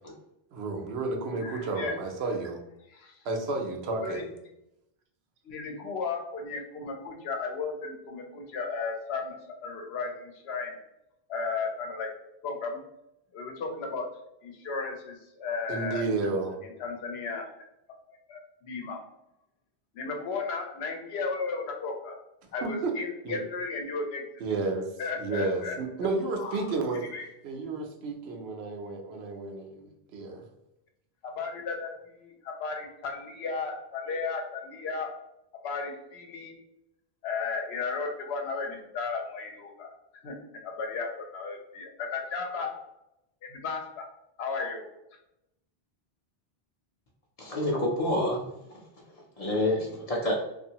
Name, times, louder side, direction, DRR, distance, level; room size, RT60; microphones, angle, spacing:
voice 1, 0.5-2.6 3.2-4.3 15.7-16.6 22.6-22.9 23.2-23.4 24.4-24.9 25.2-27.1 27.4-30.4, right 3 dB, 80° right, 3 dB, 0.9 m, -31 dB
voice 2, 1.4-1.9 2.9-3.1 4.0-4.2 5.4-10.8 11.3-12.1 12.4-12.8 13.3-14.1 14.4-16.0 16.8-17.5 18.1-19.0 19.9-22.1 22.5-24.2 25.0-25.8 26.4-26.7 27.1-27.3 31.4-35.1 35.6-36.5 37.2-39.9 40.2-40.4 40.6-42.7 43.4-44.1 44.4-44.9, left 4 dB, 80° left, 3 dB, 0.9 m, -34 dB
voice 3, 47.4-48.4 49.4-50.4, left 1 dB, 45° left, -1 dB, 0.5 m, -27 dB
2.6 x 2.4 x 2.8 m, 0.85 s
omnidirectional pair, 1.1 m